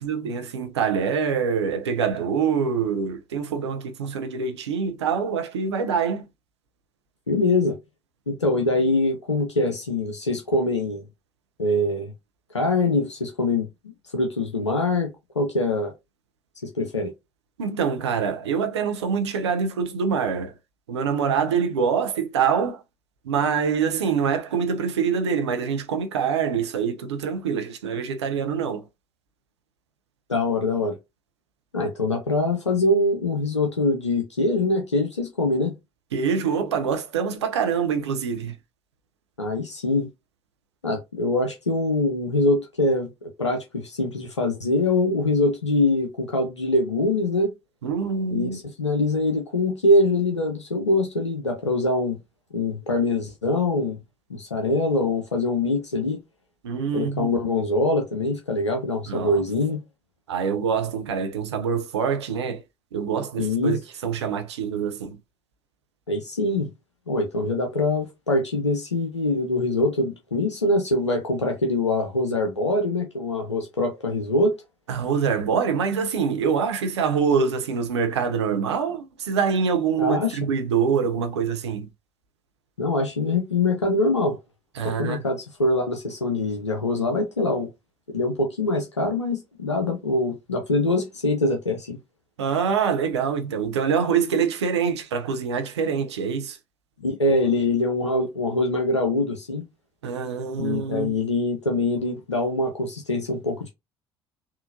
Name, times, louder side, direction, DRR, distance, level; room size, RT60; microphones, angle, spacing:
voice 1, 0.0-6.2 17.6-20.5 20.9-22.8 23.2-28.8 36.1-38.5 47.8-48.6 56.6-57.3 59.1-59.4 60.3-62.6 62.9-65.2 74.9-81.9 84.8-85.2 92.4-96.6 100.0-101.1, right 6 dB, 75° right, 0.6 m, -25 dB
voice 2, 7.3-7.8 8.3-11.0 11.6-12.1 12.5-13.7 14.1-15.1 15.4-15.9 16.6-17.1 30.3-31.0 31.7-35.7 39.4-40.1 40.8-43.1 43.4-47.5 48.3-52.2 52.5-54.0 54.3-56.2 56.9-59.8 63.4-63.8 66.1-66.7 67.1-74.6 80.0-80.4 82.8-84.4 84.8-87.7 88.1-92.0 97.0-99.6 100.6-103.7, left 2 dB, 85° left, 0.5 m, -23 dB
3.7 x 2.4 x 2.5 m
figure-of-eight pair, 55°, 15 cm